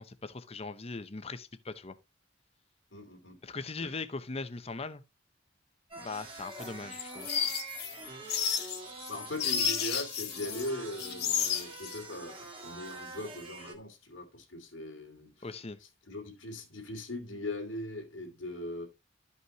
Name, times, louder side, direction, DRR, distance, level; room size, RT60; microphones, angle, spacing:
voice 1, 0.0-2.0 3.4-5.0 6.0-7.3 15.4-15.8, left 3 dB, 30° left, 0.8 m, -40 dB
voice 2, 2.9-3.4 3.8-3.9 8.7-8.8 9.1-15.5 16.1-18.9, left 1 dB, 80° left, 2.6 m, -40 dB
sound 1, 5.9-13.7, right 3 dB, 30° right, 1.9 m, -45 dB
sound 2, 6.6-10.7 11.0-12.0, left 7 dB, 55° left, 1.5 m, -32 dB
13.0 x 5.6 x 2.9 m
head